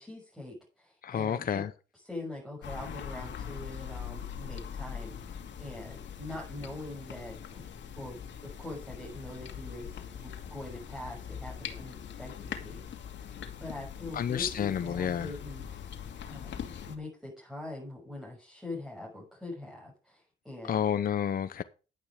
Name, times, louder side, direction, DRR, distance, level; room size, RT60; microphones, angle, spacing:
voice 1, 0.0-1.7 1.9-12.8 13.3-20.9, left 2 dB, ahead, 6.7 m, -43 dB
voice 2, 1.0-1.7 14.1-15.3 20.7-21.6, left 8 dB, 45° left, 0.8 m, -30 dB
sound 1, 2.6-17.0, left 8 dB, 65° left, 2.4 m, -42 dB
11.5 x 9.0 x 4.9 m
cardioid pair, 90°, 20 cm